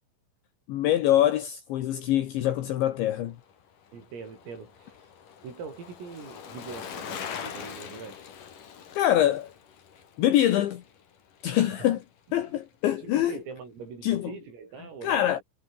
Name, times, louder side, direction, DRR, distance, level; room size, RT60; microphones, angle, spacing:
voice 1, 0.7-3.4 8.9-9.5 10.2-10.8 11.4-12.0 12.3-13.3 14.0-14.3 15.0-15.4, left 12 dB, 70° left, 3.7 m, -24 dB
Bicycle, 3.3-11.7 12.0-12.1, left 7 dB, 45° left, 3.8 m, -43 dB
voice 2, 3.9-5.0 5.4-8.2 11.6-11.9 12.4-12.6 13.0-15.4, right 5 dB, 90° right, 10.5 m, -42 dB
omnidirectional pair, 5.8 m